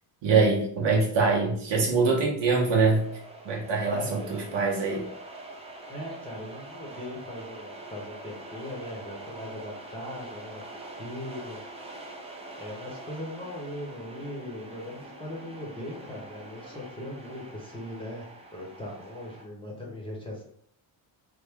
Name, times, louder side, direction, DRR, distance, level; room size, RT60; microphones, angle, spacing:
voice 1, 0.2-3.0 3.4-5.1, right 4 dB, 60° right, -1 dB, 0.9 m, -24 dB
sound 1, 2.7-19.4, right 2 dB, 15° right, 0.5 m, -44 dB
voice 2, 3.8-4.4 5.9-11.6 12.6-18.3 18.5-20.4, left 1 dB, 10° left, -3 dB, 0.9 m, -39 dB
3.2 x 2.2 x 3.5 m, 0.66 s
cardioid pair, 110°, 49 cm